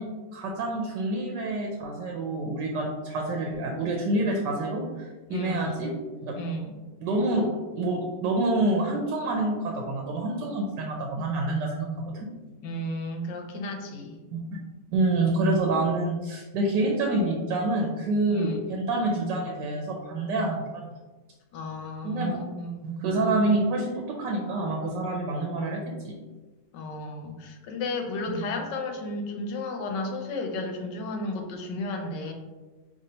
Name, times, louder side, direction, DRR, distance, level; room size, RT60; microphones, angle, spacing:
voice 1, 0.0-5.9 6.2-6.4 7.0-12.3 14.3-14.4 14.9-20.9 22.0-22.4 22.8-26.2 28.3-28.4, right 2 dB, 80° right, 1 dB, 1.3 m, -27 dB
voice 2, 5.3-5.8 6.4-6.8 12.6-14.2 18.3-18.7 21.5-22.8 26.7-32.3, left 1 dB, 85° left, 3 dB, 1.4 m, -33 dB
5.3 x 3.2 x 2.8 m, 1.3 s
omnidirectional pair, 1.8 m